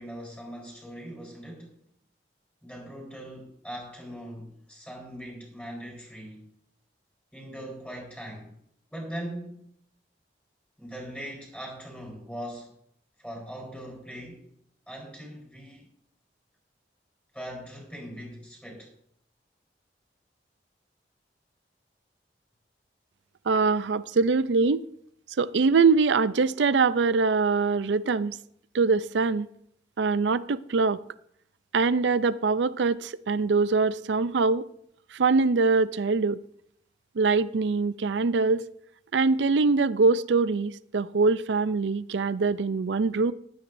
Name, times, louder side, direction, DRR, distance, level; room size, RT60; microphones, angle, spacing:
voice 1, 0.0-1.8 2.6-6.5 7.3-8.6 8.9-9.7 10.8-12.7 13.2-14.5 14.9-15.9 17.3-18.9, equal, 5° left, 4.3 m, -40 dB
voice 2, 23.5-24.8 25.4-28.4 28.7-29.5 30.0-31.0 31.7-34.6 35.1-36.4 37.2-38.7 39.1-43.3, right 4 dB, 85° right, 0.5 m, -23 dB
15.5 x 12.0 x 2.6 m
head